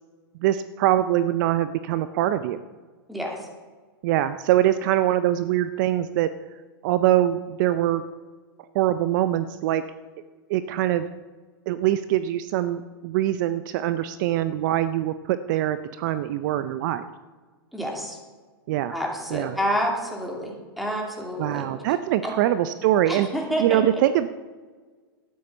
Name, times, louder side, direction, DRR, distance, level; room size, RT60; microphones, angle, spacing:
voice 1, 0.4-2.6 4.0-6.3 6.8-8.0 8.7-9.8 10.5-11.1 11.7-17.1 18.7-19.0 19.3-19.6 21.4-23.3 23.6-24.3, right 13 dB, 50° right, 13 dB, 0.5 m, -23 dB
voice 2, 3.1-3.5 17.7-18.2 18.9-21.6 22.2-22.3 23.1-23.8, equal, ahead, -1 dB, 2.6 m, -28 dB
12.5 x 9.5 x 5.4 m, 1.4 s
hypercardioid pair, 125°, 13 cm